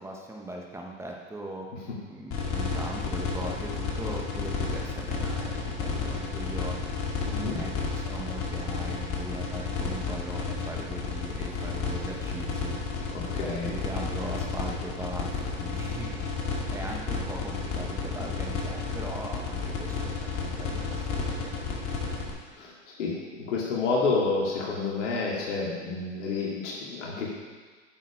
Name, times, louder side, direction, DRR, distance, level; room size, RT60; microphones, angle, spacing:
voice 1, 0.0-1.7 2.1-6.8 7.4-12.8 13.4-16.2 16.7-22.3, right 1 dB, 5° right, 0 dB, 1.1 m, -40 dB
sound 1, 2.3-22.3, left 5 dB, 35° left, 2.2 m, -31 dB
voice 2, 7.2-7.6 13.1-13.7 22.5-22.7 23.0-27.3, left 4 dB, 70° left, -4 dB, 2.5 m, -29 dB
9.0 x 7.3 x 4.9 m, 1.4 s
hypercardioid pair, 115°, 37 cm